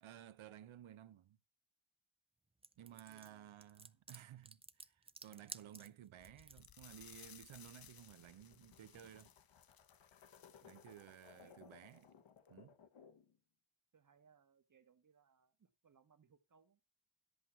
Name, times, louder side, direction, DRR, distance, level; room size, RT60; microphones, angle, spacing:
voice 1, 0.0-1.4 2.8-9.3 10.6-12.1 12.5-12.7, right 11 dB, 90° right, 0.8 m, -56 dB
sound 1, 2.6-6.8, right 3 dB, 15° right, 0.4 m, -54 dB
voice 2, 2.8-3.5 3.8-3.9 11.4-11.8 13.9-16.8, right 6 dB, 40° right, 1.1 m, -70 dB
sound 2, 6.2-13.4, left 7 dB, 75° left, 1.3 m, -64 dB
sound 3, 6.6-11.6 11.9-12.0 12.4-12.5, left 9 dB, 50° left, 0.6 m, -62 dB
11.0 x 8.2 x 4.3 m
wide cardioid pair, 170°, 46 cm